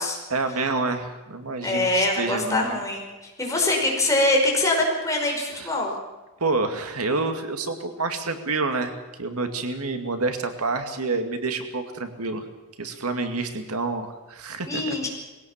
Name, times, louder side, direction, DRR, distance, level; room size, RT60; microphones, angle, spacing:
voice 1, 0.3-2.7 5.6-5.7 6.4-12.4 12.8-15.0, right 3 dB, 85° right, 7 dB, 2.2 m, -28 dB
voice 2, 1.6-5.9 14.7-15.1, left 2 dB, 15° left, -1 dB, 5.2 m, -23 dB
21.0 x 17.0 x 7.4 m, 1.2 s
head